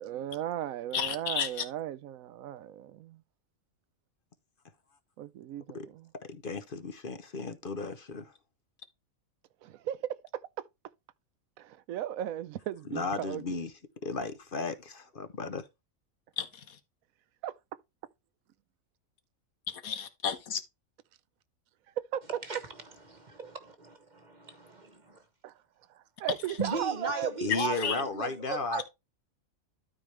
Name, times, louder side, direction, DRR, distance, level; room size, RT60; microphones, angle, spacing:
voice 1, 0.0-3.2 5.2-6.1 9.6-10.4 11.6-13.6 17.4-17.5 22.0-22.2 25.4-25.5 25.9-28.3, right 11 dB, 80° right, 1.0 m, -37 dB
voice 2, 0.9-1.6 16.4-16.8 19.7-20.6 27.5-28.0, left 7 dB, 85° left, 1.6 m, -32 dB
voice 3, 6.3-8.3 12.9-13.7 14.0-15.6 27.4-28.8, left 4 dB, 45° left, 0.9 m, -35 dB
voice 4, 23.1-25.2 26.6-28.8, right 4 dB, 35° right, 1.3 m, -36 dB
12.5 x 4.5 x 3.2 m
omnidirectional pair, 1.4 m